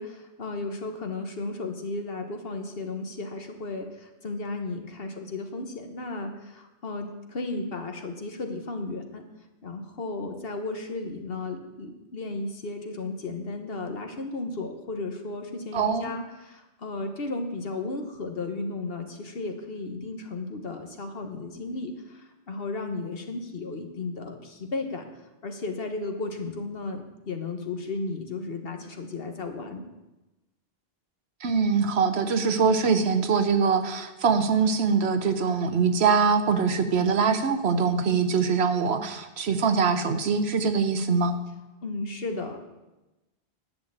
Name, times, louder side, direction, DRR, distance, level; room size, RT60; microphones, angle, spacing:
voice 1, 0.0-9.2 9.6-25.1 25.4-29.8 41.8-42.6, left 3 dB, 70° left, 5 dB, 1.5 m, -34 dB
voice 2, 15.7-16.1 31.4-41.4, right 5 dB, 90° right, 9 dB, 1.2 m, -23 dB
10.5 x 6.4 x 8.6 m, 1.0 s
omnidirectional pair, 1.0 m